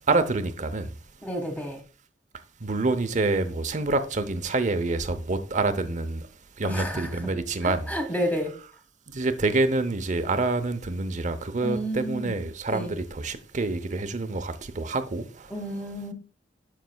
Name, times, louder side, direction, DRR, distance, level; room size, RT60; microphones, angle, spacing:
voice 1, 0.1-0.9 2.6-6.3 6.6-7.9 9.1-15.5, right 3 dB, 45° right, 0.7 m, -27 dB
voice 2, 1.2-1.8 6.6-7.3 7.6-8.6 11.6-12.4 12.7-12.9 15.5-16.1, equal, 10° left, 1.6 m, -31 dB
9.4 x 6.7 x 2.3 m
head